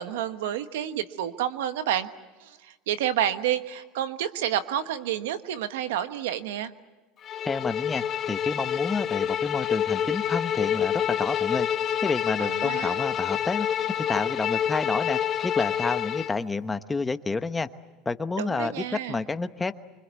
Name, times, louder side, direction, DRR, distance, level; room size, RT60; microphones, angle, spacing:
voice 1, 0.0-2.1 2.4-6.7 12.4-13.0 18.4-19.2, right 11 dB, 90° right, 11 dB, 1.3 m, -29 dB
Bowed string instrument, 7.2-16.4, left 9 dB, 40° left, 1.0 m, -27 dB
voice 2, 7.4-11.7 12.0-13.7 14.0-17.7 18.0-19.7, left 3 dB, 15° left, 10 dB, 1.0 m, -29 dB
25.0 x 24.5 x 8.3 m, 1.2 s
supercardioid pair, 115°, 0 cm